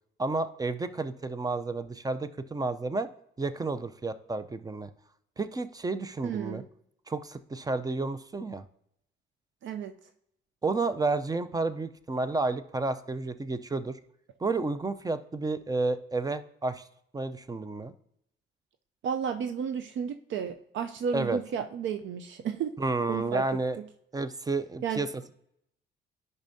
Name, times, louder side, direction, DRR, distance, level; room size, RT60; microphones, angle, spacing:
voice 1, 0.2-3.1 3.4-4.9 5.4-6.6 7.1-8.6 10.6-14.0 14.4-16.8 17.1-17.9 21.1-21.4 22.8-23.8 24.1-25.3, right 3 dB, 20° right, 13 dB, 0.5 m, -31 dB
voice 2, 6.2-6.7 9.6-9.9 19.0-22.8 23.1-23.9 24.8-25.1, right 7 dB, 70° right, 8 dB, 0.5 m, -33 dB
10.5 x 5.4 x 2.7 m, 0.74 s
cardioid pair, 90°, 20 cm